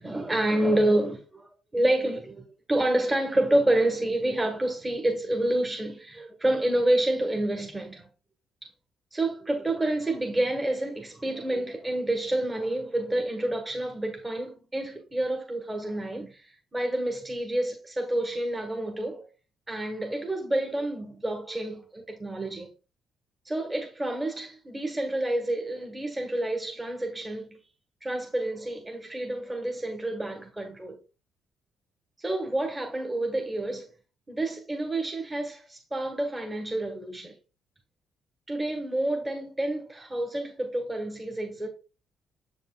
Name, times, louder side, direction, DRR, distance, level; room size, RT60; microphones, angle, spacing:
voice 1, 0.0-1.5 1.7-8.1 9.1-19.3 19.7-22.7 23.4-27.6 28.0-31.0 32.2-33.9 34.3-37.3 38.5-41.7, right 1 dB, 20° right, 1.5 m, -28 dB
7.3 x 5.3 x 2.4 m
cardioid pair, 90°, 0 cm